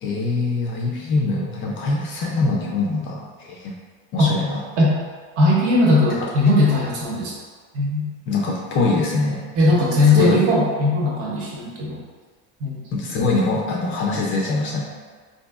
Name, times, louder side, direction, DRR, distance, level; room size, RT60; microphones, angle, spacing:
voice 1, 0.0-3.7 4.1-4.6 8.3-9.4 10.0-10.4 12.9-14.8, left 3 dB, 40° left, -2 dB, 0.4 m, -23 dB
voice 2, 5.4-7.4 7.7-8.1 9.5-12.0 12.6-12.8, left 2 dB, 45° right, -3 dB, 0.8 m, -18 dB
3.9 x 2.7 x 2.3 m, 1.5 s
cardioid pair, 165°, 33 cm